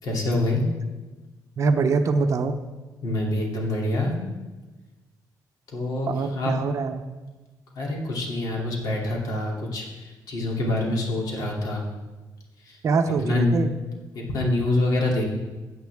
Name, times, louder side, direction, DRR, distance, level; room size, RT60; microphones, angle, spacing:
voice 1, 0.0-0.6 3.0-4.2 5.7-6.5 7.7-11.8 12.6-12.8 13.2-13.5 14.3-15.2, left 2 dB, 60° left, -2 dB, 2.8 m, -26 dB
voice 2, 1.6-2.6 6.1-7.0 12.8-13.7, right 4 dB, 45° right, 8 dB, 0.7 m, -23 dB
16.0 x 8.7 x 3.5 m, 1.2 s
cardioid pair, 155°, 7 cm